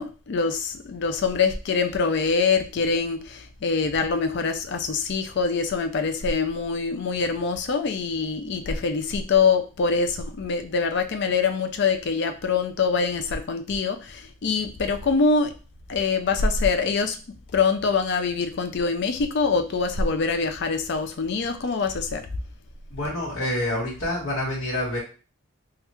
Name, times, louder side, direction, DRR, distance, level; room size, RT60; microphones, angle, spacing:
voice 1, 0.0-15.5 15.9-17.2 17.5-22.2, left 4 dB, 55° left, 8 dB, 0.4 m, -24 dB
voice 2, 22.9-25.0, left 1 dB, 80° left, -7 dB, 1.3 m, -27 dB
3.3 x 2.4 x 3.0 m, 0.34 s
head